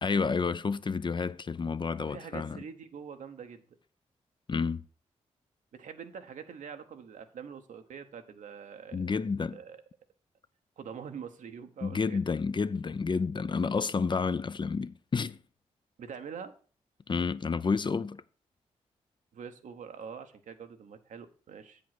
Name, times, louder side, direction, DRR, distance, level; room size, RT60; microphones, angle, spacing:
voice 1, 0.0-2.6 4.5-4.8 8.9-9.6 11.8-15.4 17.1-18.2, left 5 dB, 35° left, 0.5 m, -30 dB
voice 2, 2.0-3.6 5.7-9.0 9.5-9.8 10.8-12.4 16.0-16.5 19.3-21.8, right 7 dB, 75° right, 0.9 m, -44 dB
8.2 x 5.1 x 5.9 m
supercardioid pair, 50°, 13 cm